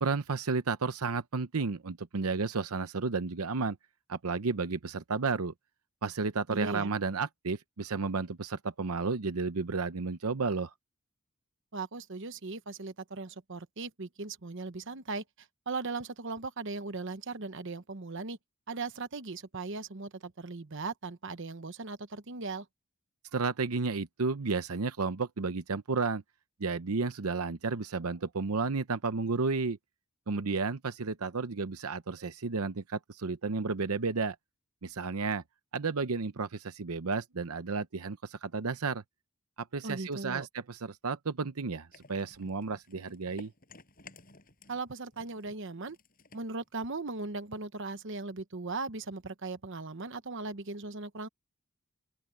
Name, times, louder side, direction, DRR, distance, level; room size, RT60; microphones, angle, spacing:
voice 1, 0.0-3.8 4.1-5.5 6.0-10.7 23.3-26.2 26.6-29.8 30.3-34.4 34.8-35.4 35.7-39.0 39.6-43.5, right 4 dB, 80° right, 0.8 m, -32 dB
voice 2, 6.5-6.9 11.7-18.4 18.7-22.7 39.8-40.5 44.7-46.0 46.3-51.3, right 3 dB, 55° right, 1.0 m, -38 dB
sound 1, 41.9-44.9 45.1-47.5, left 3 dB, 40° left, 7.4 m, -55 dB
open air
head